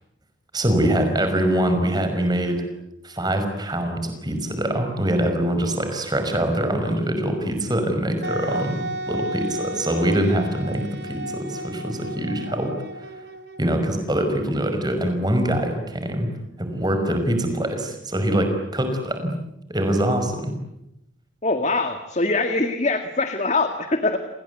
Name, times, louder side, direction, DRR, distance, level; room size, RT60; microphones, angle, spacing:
voice 1, 0.5-2.6 3.0-12.7 13.6-16.3 16.6-19.3 19.7-20.5, right 1 dB, 20° right, 6 dB, 5.5 m, -24 dB
Wind instrument woodwind instrument, 8.2-13.8, right 1 dB, 55° right, 2.6 m, -33 dB
voice 2, 21.4-24.2, left 3 dB, 35° left, 7 dB, 1.9 m, -23 dB
29.5 x 21.0 x 9.5 m, 0.85 s
head